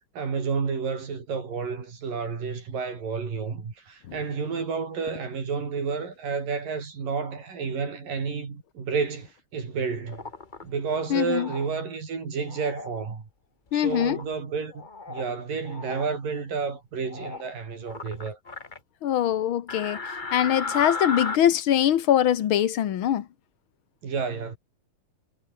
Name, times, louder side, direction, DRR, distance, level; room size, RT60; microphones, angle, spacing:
voice 1, 0.1-10.2 10.6-13.3 13.7-14.7 15.1-18.4 24.0-24.6, right 5 dB, 70° right, 6.3 m, -30 dB
sound 1, 10.1-10.6 11.3-11.7 12.4-12.9 13.8-14.2 14.7-15.3 15.6-16.0 17.0-17.5 17.8-18.8 19.7-21.4, left 3 dB, 60° left, 0.4 m, -35 dB
voice 2, 11.1-11.5 13.7-14.2 19.0-20.0 20.3-23.2, left 10 dB, 90° left, 1.1 m, -23 dB
omnidirectional pair, 4.1 m